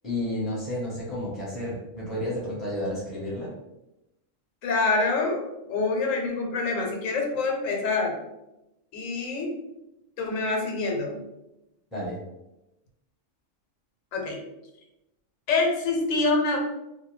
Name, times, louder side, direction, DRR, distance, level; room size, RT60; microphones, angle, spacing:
voice 1, 0.0-3.5 11.9-12.2, left 1 dB, ahead, -6 dB, 0.7 m, -31 dB
voice 2, 4.6-8.2 8.9-9.5 10.2-11.2 14.1-14.4 15.5-16.6, left 3 dB, 90° left, 1 dB, 1.0 m, -26 dB
2.3 x 2.1 x 3.0 m, 0.93 s
omnidirectional pair, 1.3 m